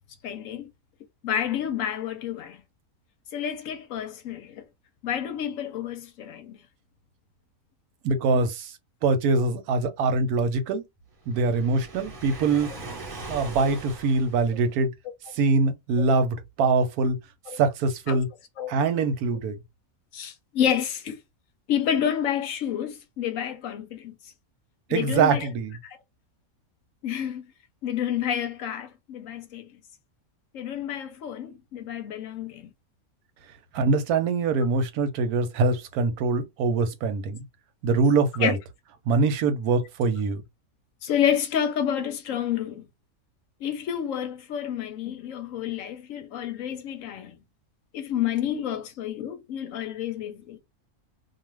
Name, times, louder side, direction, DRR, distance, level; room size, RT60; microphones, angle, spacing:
voice 1, 0.2-0.7 1.2-2.6 3.3-4.6 5.0-6.6 16.0-16.1 17.5-17.6 18.1-18.2 18.6-18.7 20.1-21.2 21.7-24.1 24.9-25.5 25.8-26.0 27.0-27.5 27.8-29.7 30.5-32.7 38.4-38.6 41.0-42.8 43.6-47.3 47.9-50.6, left 9 dB, 70° left, 0.9 m, -29 dB
voice 2, 8.0-8.7 9.0-10.8 11.3-12.7 13.3-14.9 15.3-17.2 17.5-18.3 18.7-19.6 24.9-25.8 33.7-37.4 37.8-38.6 39.1-40.4, right 4 dB, 85° right, 1.1 m, -23 dB
Waves surf, 11.3-14.8, right 2 dB, 40° right, 1.0 m, -40 dB
2.4 x 2.4 x 3.1 m
omnidirectional pair, 1.6 m